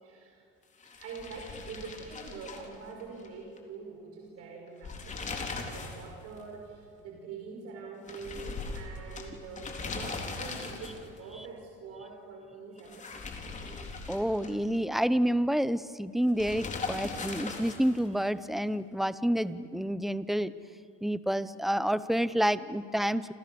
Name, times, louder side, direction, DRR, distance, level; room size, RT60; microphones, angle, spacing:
voice 1, 0.0-0.5 1.0-13.6, right 4 dB, 60° right, 0 dB, 5.4 m, -45 dB
sound 1, 0.8-3.3 3.6-3.7 4.7-6.1 6.4-6.5 8.1-11.2 12.8-14.8 16.4-18.1, left 4 dB, 25° left, 3.9 m, -39 dB
voice 2, 13.7-20.5 21.0-23.3, equal, ahead, 15 dB, 0.7 m, -29 dB
29.0 x 28.5 x 6.9 m, 2.3 s
cardioid pair, 135°, 29 cm